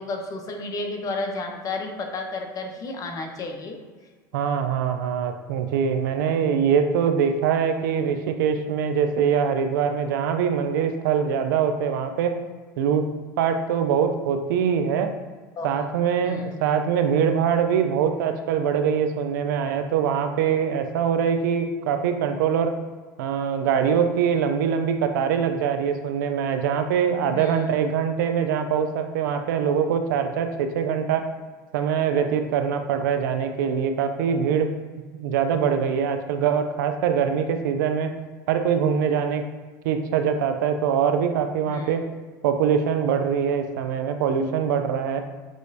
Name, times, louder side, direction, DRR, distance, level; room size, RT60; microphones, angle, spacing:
voice 1, 0.0-3.8 15.6-15.9 16.2-16.6 27.3-27.7 41.6-42.0, left 3 dB, 35° left, 3 dB, 0.8 m, -32 dB
voice 2, 4.3-12.4 12.8-13.1 13.4-15.1 15.6-22.7 23.2-31.3 31.7-38.1 38.5-39.5 39.8-42.0 42.4-45.2, right 7 dB, 85° right, 7 dB, 0.5 m, -23 dB
6.2 x 3.1 x 2.7 m, 1.4 s
supercardioid pair, 105°, 10 cm